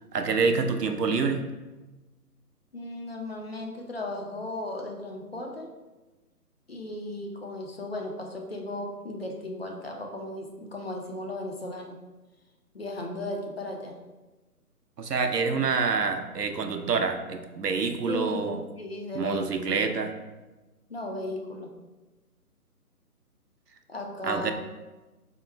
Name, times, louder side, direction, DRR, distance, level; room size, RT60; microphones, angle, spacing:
voice 1, 0.1-1.4 15.0-18.6 19.1-20.1 24.2-24.5, right 5 dB, 90° right, 6 dB, 0.6 m, -27 dB
voice 2, 2.7-5.7 6.7-11.9 12.7-13.9 18.0-19.7 20.9-21.7 23.9-24.5, left 1 dB, 45° left, 1 dB, 0.5 m, -36 dB
3.5 x 2.2 x 4.3 m, 1.2 s
figure-of-eight pair, 140°, 46 cm